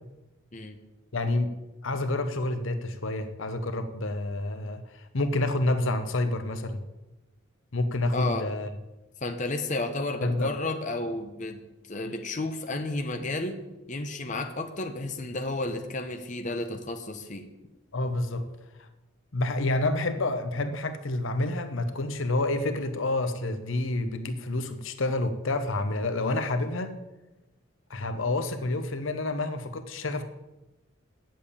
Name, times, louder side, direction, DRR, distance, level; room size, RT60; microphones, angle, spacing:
voice 1, 1.1-1.5 1.8-6.8 7.7-8.7 10.2-10.5 17.9-18.5 19.3-26.9 27.9-30.2, left 2 dB, 70° left, 9 dB, 0.9 m, -28 dB
voice 2, 8.1-8.5 9.2-11.6 11.9-13.6 13.9-17.5, left 2 dB, 35° left, 5 dB, 0.9 m, -32 dB
8.6 x 7.6 x 8.6 m, 1.0 s
head